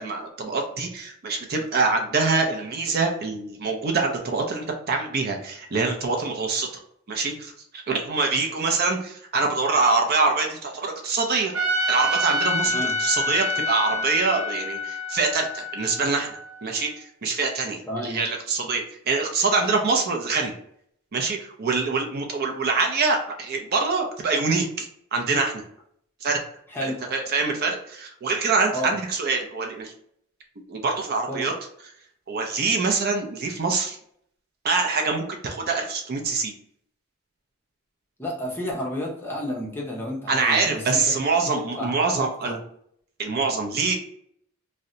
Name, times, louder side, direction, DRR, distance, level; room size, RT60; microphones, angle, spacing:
voice 1, 0.0-6.8 7.1-11.5 11.9-20.5 21.1-25.6 26.2-26.4 26.8-29.9 30.7-31.5 32.3-34.0 34.6-36.5 40.3-42.6 43.2-44.0, right 4 dB, 45° right, 2 dB, 0.5 m, -25 dB
Trumpet, 11.5-16.7, left 1 dB, 75° right, 0.9 m, -27 dB
voice 2, 17.9-18.2 26.7-27.0 28.7-28.9 31.3-31.5 38.2-41.0 41.6-42.5, left 1 dB, 10° left, -3 dB, 0.7 m, -31 dB
2.7 x 2.1 x 3.7 m, 0.68 s
head